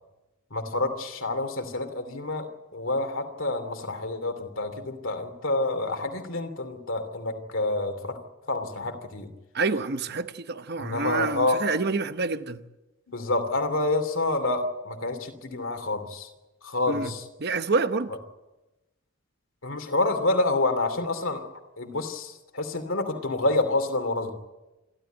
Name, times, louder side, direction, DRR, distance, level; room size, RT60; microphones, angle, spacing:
voice 1, 0.5-2.5 2.7-8.2 8.5-9.3 10.8-11.6 13.1-16.3 16.6-17.2 19.6-21.4 21.8-24.3, left 2 dB, 60° left, 2.8 m, -28 dB
voice 2, 9.5-12.6 16.9-17.1 17.4-18.1, right 3 dB, 45° right, 0.9 m, -27 dB
27.0 x 12.5 x 9.2 m
head